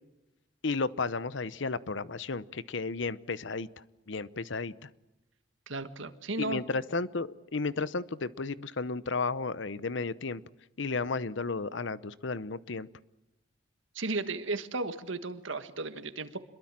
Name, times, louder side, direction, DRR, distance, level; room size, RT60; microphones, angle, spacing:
voice 1, 0.6-3.7 4.1-4.9 6.4-10.4 10.8-12.9, left 4 dB, 70° left, 17 dB, 0.8 m, -33 dB
voice 2, 5.7-6.6 13.9-16.4, right 3 dB, 80° right, 10 dB, 1.6 m, -34 dB
26.5 x 22.0 x 7.5 m, 0.94 s
head